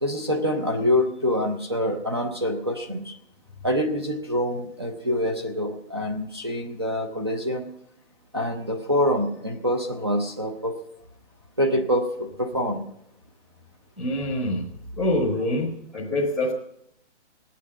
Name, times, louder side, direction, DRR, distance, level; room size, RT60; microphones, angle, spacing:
voice 1, 0.0-3.1 3.6-7.7 8.3-10.8 11.6-12.8, equal, 20° right, 3 dB, 0.6 m, -25 dB
voice 2, 14.0-14.7 14.9-16.5, left 1 dB, ahead, -6 dB, 0.9 m, -25 dB
19.5 x 8.4 x 7.3 m, 0.78 s
hypercardioid pair, 175°, 36 cm